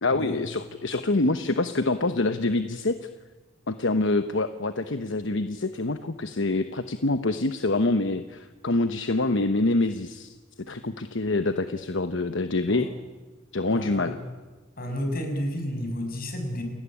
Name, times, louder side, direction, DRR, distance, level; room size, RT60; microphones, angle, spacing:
voice 1, 0.0-3.1 3.7-10.3 10.7-12.9 13.5-14.2, left 2 dB, 70° left, 9 dB, 1.1 m, -26 dB
voice 2, 13.7-14.1 14.8-16.6, equal, 50° left, 5 dB, 6.3 m, -31 dB
29.5 x 18.5 x 9.9 m, 1.3 s
head